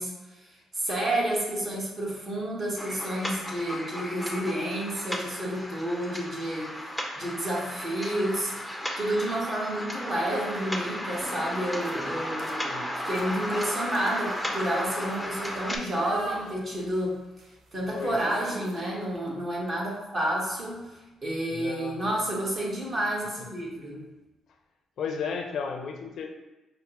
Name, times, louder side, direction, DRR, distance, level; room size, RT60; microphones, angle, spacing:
voice 1, 0.0-12.6 13.0-17.2 17.7-24.1, right 1 dB, 40° right, -4 dB, 1.2 m, -30 dB
sound 1, 2.8-15.8, equal, ahead, 0.5 m, -34 dB
sound 2, 6.8-6.9 7.5-7.8 9.6-9.7 10.0-10.1 10.3-19.2, right 2 dB, 70° right, 0.6 m, -43 dB
voice 2, 17.9-18.2 21.5-22.1 25.0-26.3, left 6 dB, 65° left, 4 dB, 0.4 m, -34 dB
5.3 x 2.0 x 2.9 m, 1.1 s
cardioid pair, 90°, 0 cm